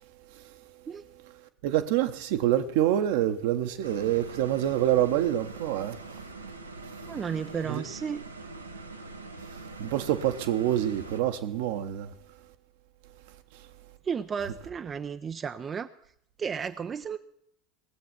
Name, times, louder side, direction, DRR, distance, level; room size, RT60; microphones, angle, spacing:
voice 1, 1.6-6.0 7.7-7.8 9.8-12.1, right 12 dB, 60° right, 1.0 m, -26 dB
sound 1, 3.8-11.2, right 3 dB, 90° right, 0.9 m, -43 dB
voice 2, 7.0-8.2 14.0-15.9 16.4-17.2, right 6 dB, 30° right, 0.5 m, -33 dB
19.0 x 7.9 x 6.0 m
figure-of-eight pair, 75°, 0 cm